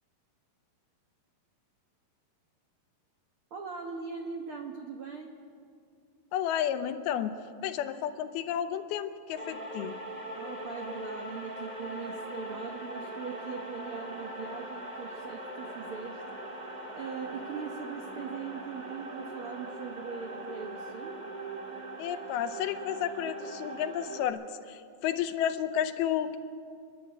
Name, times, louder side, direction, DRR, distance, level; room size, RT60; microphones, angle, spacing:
voice 1, 3.5-5.4 10.3-16.2 16.9-21.2, right 5 dB, 75° right, 3 dB, 1.2 m, -40 dB
voice 2, 6.3-7.3 7.6-9.9 22.0-24.4 24.7-26.4, left 10 dB, 80° left, 9 dB, 2.8 m, -31 dB
sound 1, 9.4-24.3, right 1 dB, 40° right, 0.5 m, -41 dB
30.0 x 12.0 x 8.8 m, 2.3 s
omnidirectional pair, 4.5 m